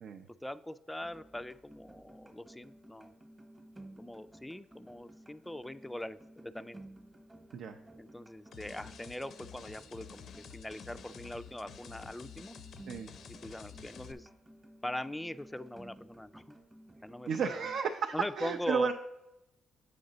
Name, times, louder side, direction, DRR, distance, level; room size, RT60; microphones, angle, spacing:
voice 1, 0.4-3.1 4.0-6.8 8.0-12.6 13.3-14.3 14.8-16.6 17.0-17.6 18.1-18.9, left 1 dB, 10° left, 12 dB, 0.3 m, -41 dB
sound 1, 1.0-17.8, right 1 dB, 20° right, 1.0 m, -55 dB
sound 2, 8.5-14.1, left 7 dB, 65° left, 0.5 m, -50 dB
voice 2, 17.3-18.9, right 5 dB, 70° right, 4 dB, 0.5 m, -32 dB
7.8 x 5.3 x 3.9 m, 0.95 s
cardioid pair, 90°, 0 cm